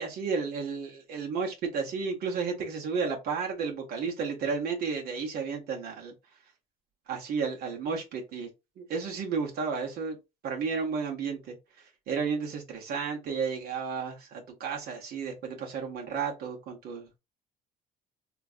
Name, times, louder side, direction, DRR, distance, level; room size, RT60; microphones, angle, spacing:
voice 1, 0.0-6.1 7.1-8.5 8.8-10.2 10.4-11.5 12.1-17.2, right 5 dB, 65° right, 0.9 m, -32 dB
3.8 x 2.4 x 2.4 m
cardioid pair, 110°, 17 cm